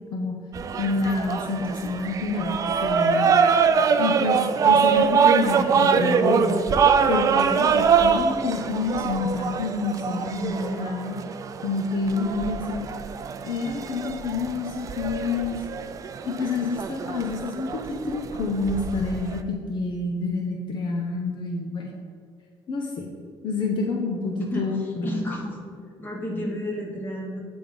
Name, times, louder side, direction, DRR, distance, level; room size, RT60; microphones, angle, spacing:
sound 1, 0.5-19.4, right 6 dB, 35° right, 0.3 m, -24 dB
voice 1, 0.8-3.3 4.0-6.6 7.1-11.2 11.6-12.9 13.4-15.6 16.2-21.9 22.7-23.1 23.4-25.2, left 3 dB, 55° left, 1 dB, 0.8 m, -28 dB
voice 2, 24.3-25.6 26.0-27.4, left 1 dB, 20° left, -2 dB, 1.4 m, -32 dB
8.9 x 3.5 x 5.1 m, 2.2 s
cardioid pair, 145°, 9 cm